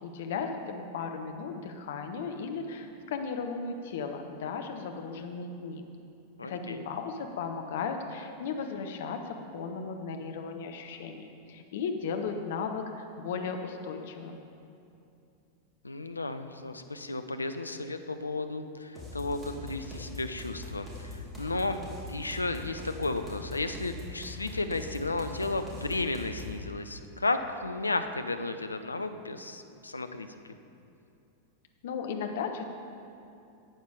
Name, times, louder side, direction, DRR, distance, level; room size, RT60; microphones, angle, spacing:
voice 1, 0.0-5.8 6.4-14.4 31.8-32.6, left 5 dB, 55° left, 5 dB, 0.9 m, -36 dB
voice 2, 6.4-6.8 15.8-21.8 22.1-30.3, left 2 dB, 80° left, 8 dB, 0.5 m, -33 dB
sound 1, 18.9-26.6, left 2 dB, 15° right, 2.8 m, -42 dB
12.0 x 8.3 x 5.0 m, 2.7 s
figure-of-eight pair, 90°, 0 cm